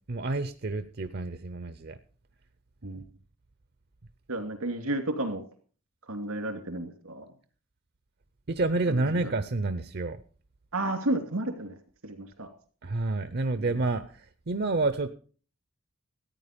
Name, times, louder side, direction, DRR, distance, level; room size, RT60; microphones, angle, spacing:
voice 1, 0.1-2.0 2.8-3.0 8.5-10.2 12.8-14.0 14.5-15.1, right 2 dB, 50° right, 11 dB, 0.6 m, -29 dB
voice 2, 4.3-5.4 6.1-7.3 8.9-9.3 10.7-11.7 12.0-12.5 13.6-13.7, right 1 dB, 85° right, 6 dB, 2.6 m, -32 dB
14.0 x 9.2 x 5.1 m, 0.42 s
head